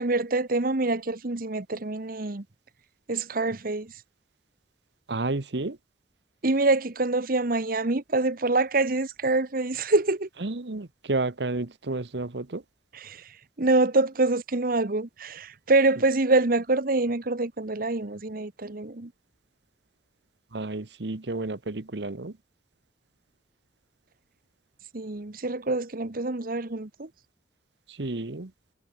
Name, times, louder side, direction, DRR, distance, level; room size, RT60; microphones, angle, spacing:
voice 1, 0.0-2.4 3.1-3.9 6.4-10.3 12.9-13.3 13.6-19.1 24.9-27.1, right 2 dB, 55° right, 1.2 m, -25 dB
voice 2, 5.1-5.8 10.4-12.6 20.5-22.3 27.9-28.5, right 2 dB, 75° right, 1.2 m, -31 dB
head